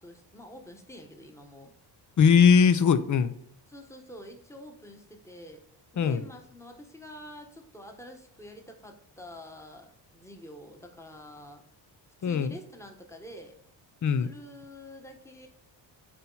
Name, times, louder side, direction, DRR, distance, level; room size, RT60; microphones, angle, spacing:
voice 1, 0.0-1.7 3.7-5.6 5.9-11.6 12.2-13.6 14.1-15.5, left 1 dB, 5° left, 4 dB, 1.3 m, -47 dB
voice 2, 2.2-3.3 6.0-6.2 12.2-12.5 14.0-14.3, left 6 dB, 40° left, 13 dB, 0.7 m, -20 dB
8.7 x 4.2 x 4.0 m, 0.69 s
cardioid pair, 100°, 44 cm